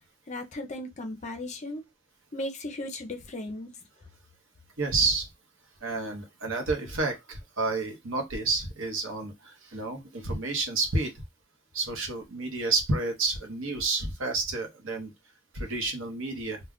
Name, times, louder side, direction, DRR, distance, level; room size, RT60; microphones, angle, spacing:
voice 1, 0.3-1.8 2.3-3.7, left 1 dB, 35° left, 0.5 m, -36 dB
voice 2, 4.8-5.3 5.8-11.2 11.7-15.1 15.5-16.6, right 3 dB, 65° right, 0.8 m, -30 dB
2.2 x 2.1 x 3.5 m
head